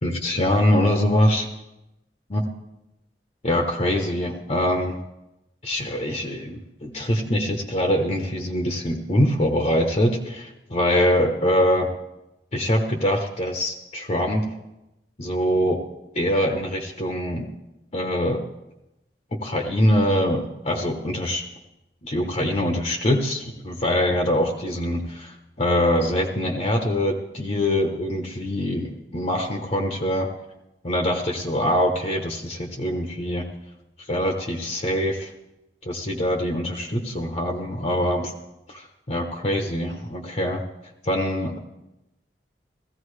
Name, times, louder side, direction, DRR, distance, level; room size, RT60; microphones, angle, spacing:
voice 1, 0.0-1.5 2.3-2.4 3.4-5.0 5.6-11.9 12.5-14.6 15.2-15.8 16.1-17.5 17.9-18.4 19.3-21.4 22.0-30.3 30.8-33.4 34.1-35.3 35.8-38.3 38.7-40.6 41.0-41.6, left 1 dB, 40° left, 3 dB, 1.0 m, -23 dB
16.0 x 15.0 x 3.3 m, 0.94 s
head